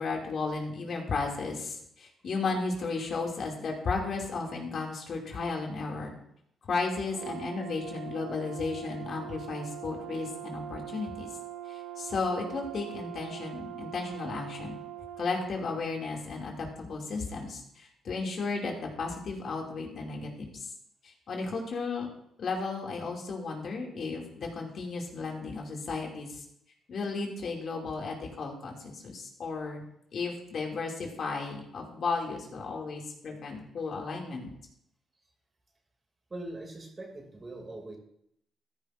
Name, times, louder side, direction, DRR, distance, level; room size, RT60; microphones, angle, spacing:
voice 1, 0.0-6.2 6.6-11.3 11.7-14.8 15.2-20.5 21.0-22.1 22.4-26.4 26.9-29.8 30.1-34.5, left 4 dB, 55° left, 0 dB, 2.5 m, -34 dB
Brass instrument, 7.1-15.5, right 12 dB, 70° right, 0.6 m, -42 dB
voice 2, 36.3-38.0, right 2 dB, 25° right, 2 dB, 2.7 m, -41 dB
14.5 x 10.5 x 2.6 m, 0.75 s
cardioid pair, 90°, 0 cm